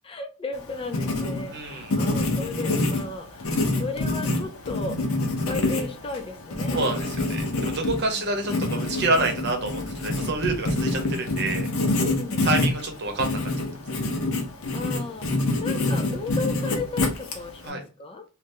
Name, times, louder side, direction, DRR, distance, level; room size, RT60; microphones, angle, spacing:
voice 1, 0.0-5.0 5.4-6.9 8.0-8.2 12.0-12.5 14.7-18.2, left 3 dB, 25° left, 5 dB, 0.4 m, -35 dB
Writing, 0.5-17.7, left 2 dB, 75° left, 0.8 m, -27 dB
voice 2, 1.5-1.9 6.7-11.7 12.4-13.4 17.6-17.8, right 2 dB, 55° right, 4 dB, 0.9 m, -28 dB
3.3 x 2.5 x 2.6 m, 0.33 s
head